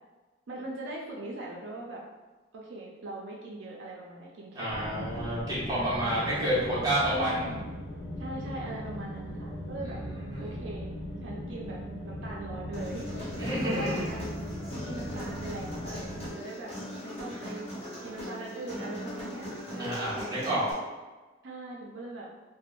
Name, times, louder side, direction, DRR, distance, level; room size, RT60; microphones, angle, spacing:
voice 1, 0.5-2.0 2.5-4.9 5.7-6.2 7.0-7.7 8.2-10.0 10.4-10.9 11.2-14.2 14.8-16.7 17.0-17.7 18.0-20.6 21.4-22.3, right 2 dB, 80° right, -3 dB, 0.4 m, -40 dB
voice 2, 4.5-7.5 9.9-10.5 13.4-14.1 19.8-20.6, right 1 dB, 20° right, -10 dB, 1.2 m, -30 dB
sound 1, 4.7-16.3, equal, 80° left, 0.5 m, -39 dB
Human voice, 12.7-20.7, left 1 dB, 35° left, 1.0 m, -40 dB
3.4 x 2.0 x 2.4 m, 1.2 s
head